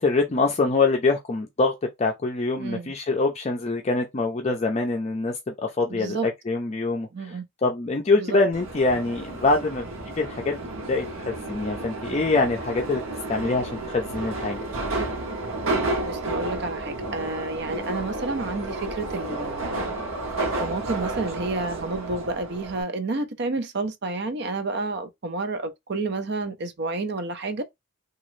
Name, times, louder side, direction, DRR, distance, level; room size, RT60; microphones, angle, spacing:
voice 1, 0.0-9.8 10.2-10.6 10.9-13.0 13.3-14.7, left 3 dB, 35° left, 0.4 m, -24 dB
voice 2, 2.6-2.9 5.9-6.3 7.1-7.4 8.2-8.4 16.0-19.8 20.4-27.6, right 3 dB, 55° right, 0.5 m, -30 dB
Subway metro underground, 8.5-22.8, right 2 dB, 85° right, 0.8 m, -31 dB
3.0 x 2.3 x 3.1 m
head